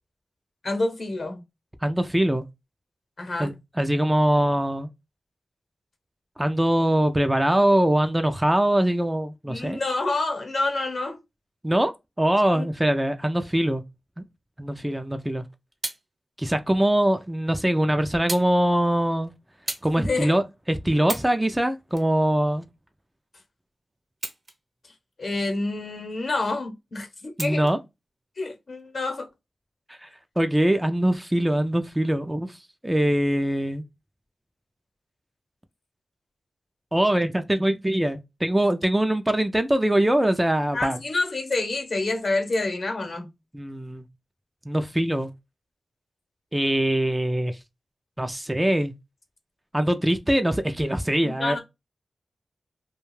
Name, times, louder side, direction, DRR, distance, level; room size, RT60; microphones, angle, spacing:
voice 1, 0.6-1.4 3.2-3.5 9.4-11.2 12.5-12.6 20.0-20.4 25.2-27.6 28.4-29.3 40.7-43.3 51.2-51.6, left 2 dB, 65° left, 0.8 m, -28 dB
voice 2, 1.8-2.4 3.4-4.9 6.4-9.8 11.6-11.9 12.2-13.8 14.6-15.4 16.4-19.3 19.8-22.7 27.4-27.8 30.0-30.1 30.4-32.5 32.8-33.8 36.9-41.0 43.5-44.0 44.7-45.3 46.5-47.6 48.2-48.9 49.7-51.6, right 1 dB, 15° right, 0.4 m, -23 dB
sound 1, 15.4-16.1 17.0-17.1 18.3-18.5 18.8-19.1 19.7-19.9 20.4-20.5 21.0-21.4 21.9-22.9 24.1-24.8 25.2-25.3 27.4-27.8 28.7-28.8, right 2 dB, 45° right, 0.9 m, -35 dB
2.4 x 2.3 x 3.1 m
cardioid pair, 45°, 0 cm